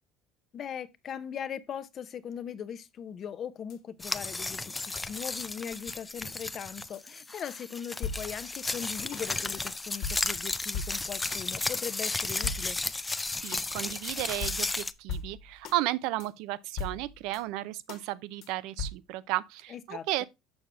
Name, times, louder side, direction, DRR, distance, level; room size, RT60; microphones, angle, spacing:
voice 1, 0.5-12.8 19.7-20.3, left 8 dB, 45° left, 0.8 m, -40 dB
sound 1, 3.7-3.8 4.8-4.9 5.9-6.0 6.4-6.5 6.9-7.0 7.5-7.6 8.0-8.6 9.1-9.3 9.7-9.8 10.0-11.5 11.9-12.0 12.4-13.1 13.5-13.7 14.0-14.1 14.4-15.8 16.2-16.3 16.8-17.4 17.9-18.0 18.4-18.5 18.8-18.9, left 4 dB, 65° left, 1.4 m, -38 dB
sound 2, 4.0-14.9, left 3 dB, 15° left, 0.4 m, -34 dB
voice 2, 13.4-20.2, right 16 dB, 80° right, 0.5 m, -33 dB
6.5 x 6.0 x 3.4 m
cardioid pair, 115°, 0 cm